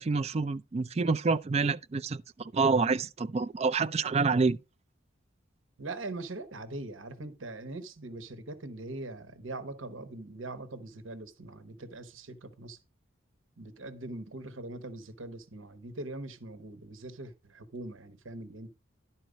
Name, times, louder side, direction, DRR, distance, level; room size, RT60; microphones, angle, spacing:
voice 1, 0.0-4.6, right 4 dB, 30° right, 0.4 m, -27 dB
voice 2, 5.8-12.8 13.6-18.7, right 2 dB, 85° right, 1.1 m, -42 dB
11.5 x 4.4 x 5.1 m
head